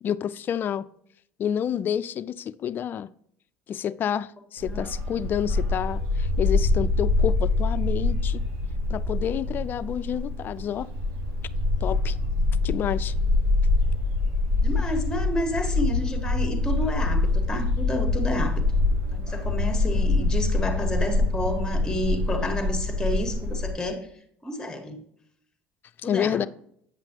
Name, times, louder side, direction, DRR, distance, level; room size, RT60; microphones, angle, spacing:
voice 1, 0.0-0.9 1.4-3.1 3.7-8.4 8.9-10.9 11.8-12.2 12.6-13.1 26.0-26.5, left 9 dB, 45° left, 0.4 m, -29 dB
voice 2, 4.6-5.2 14.6-18.6 19.1-24.1 24.4-25.0 26.0-26.4, equal, 15° left, 1.6 m, -30 dB
Bark, 4.6-23.7, left 2 dB, 75° right, 1.4 m, -25 dB
8.8 x 5.9 x 2.9 m
supercardioid pair, 105°, 5 cm